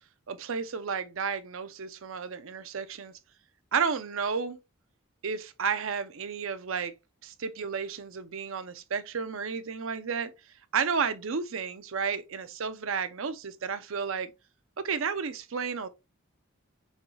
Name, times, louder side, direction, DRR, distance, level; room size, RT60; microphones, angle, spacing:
voice 1, 0.3-3.1 3.7-4.6 5.2-6.9 7.2-10.3 10.7-14.3 14.8-15.9, right 6 dB, 75° right, 0.6 m, -32 dB
6.4 x 2.3 x 3.1 m
head